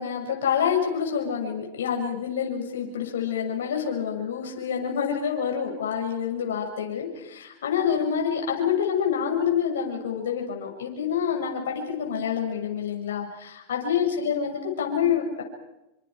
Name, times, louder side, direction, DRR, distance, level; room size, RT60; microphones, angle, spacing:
voice 1, 0.0-15.4, left 7 dB, 85° left, 1 dB, 7.1 m, -27 dB
29.0 x 27.0 x 5.1 m, 0.94 s
hypercardioid pair, 125°, 0 cm